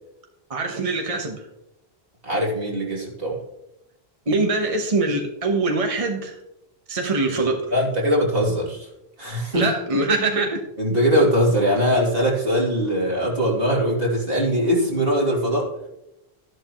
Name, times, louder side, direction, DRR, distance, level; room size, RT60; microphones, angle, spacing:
voice 1, 0.5-1.4 4.3-6.4 6.9-7.6 9.5-10.6, right 3 dB, 35° right, 3 dB, 1.1 m, -23 dB
voice 2, 2.2-3.4 7.7-8.9 9.2-9.7 10.8-15.7, equal, 65° right, -3 dB, 3.3 m, -21 dB
13.0 x 11.0 x 3.1 m, 0.86 s
omnidirectional pair, 1.0 m